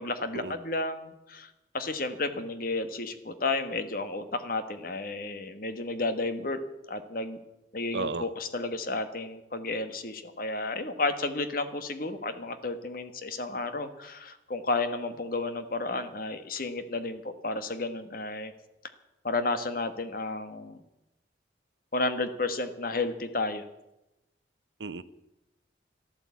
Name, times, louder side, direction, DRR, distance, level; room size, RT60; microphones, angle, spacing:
voice 1, 0.0-6.6 6.9-7.4 7.7-18.5 19.2-20.8 21.9-23.7, left 3 dB, 50° left, 9 dB, 1.4 m, -32 dB
voice 2, 7.9-8.3 24.8-25.0, right 4 dB, 65° right, 15 dB, 0.8 m, -33 dB
13.5 x 12.0 x 8.4 m, 0.92 s
head